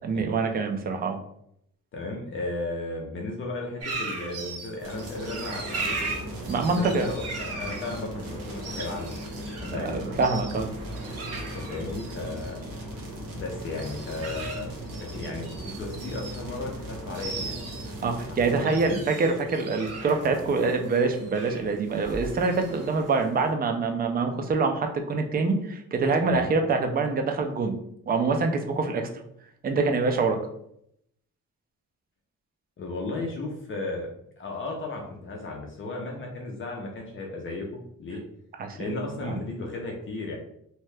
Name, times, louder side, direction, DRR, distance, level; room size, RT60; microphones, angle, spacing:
voice 1, 0.0-1.2 6.5-7.1 9.7-10.7 18.0-27.7 28.1-29.1 29.6-30.4 38.6-39.4, right 4 dB, 30° right, 5 dB, 0.3 m, -25 dB
voice 2, 1.9-6.1 6.8-10.0 11.5-12.6 13.3-17.6 18.4-19.0 26.4-26.5 32.8-34.1 34.4-38.2 38.7-40.4, left 2 dB, 40° left, 0 dB, 0.5 m, -35 dB
sound 1, 3.8-23.5, right 3 dB, 50° right, 0.7 m, -39 dB
sound 2, 4.8-18.6, right 1 dB, 85° right, 1.1 m, -38 dB
2.8 x 2.2 x 3.2 m, 0.73 s
cardioid pair, 145°, 33 cm